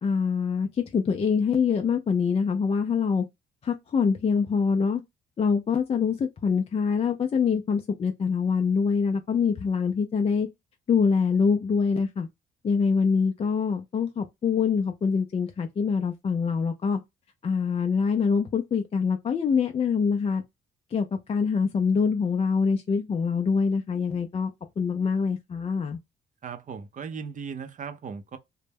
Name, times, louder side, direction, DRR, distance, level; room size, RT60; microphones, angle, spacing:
voice 1, 0.0-3.2 3.6-5.0 5.4-10.5 10.9-12.3 12.6-17.0 17.4-20.4 20.9-26.0, left 5 dB, 30° left, 0.3 m, -25 dB
voice 2, 26.4-28.4, right 6 dB, 40° right, 0.5 m, -37 dB
2.2 x 2.0 x 3.2 m
cardioid pair, 90°, 20 cm